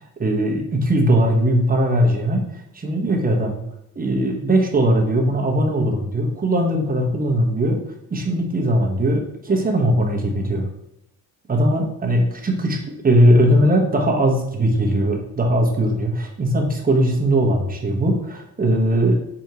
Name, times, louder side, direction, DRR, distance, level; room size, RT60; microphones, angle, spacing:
voice 1, 0.2-3.6 3.9-7.8 8.1-10.7 11.5-19.2, right 1 dB, 20° right, 1 dB, 0.9 m, -19 dB
4.7 x 2.7 x 2.8 m, 0.78 s
cardioid pair, 85°, 41 cm